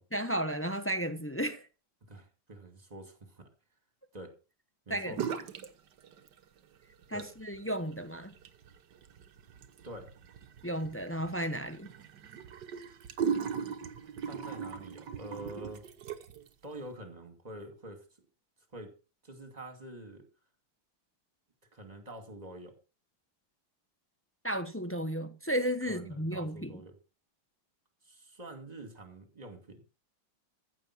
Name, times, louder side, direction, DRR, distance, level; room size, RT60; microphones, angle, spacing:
voice 1, 0.1-1.7 4.9-5.2 7.1-8.3 10.6-11.9 24.4-26.8, right 1 dB, 15° left, 0.4 m, -33 dB
voice 2, 2.1-3.5 4.1-4.4 4.9-5.2 7.1-7.3 9.8-10.1 14.3-15.9 16.6-18.1 18.7-18.9 19.2-20.3 21.7-22.8 25.9-27.0 28.0-29.8, right 1 dB, 20° right, 2.5 m, -46 dB
sound 1, 5.1-5.7 6.0-6.6 7.0-16.5, right 7 dB, 65° right, 1.6 m, -39 dB
15.0 x 7.9 x 6.0 m
omnidirectional pair, 2.1 m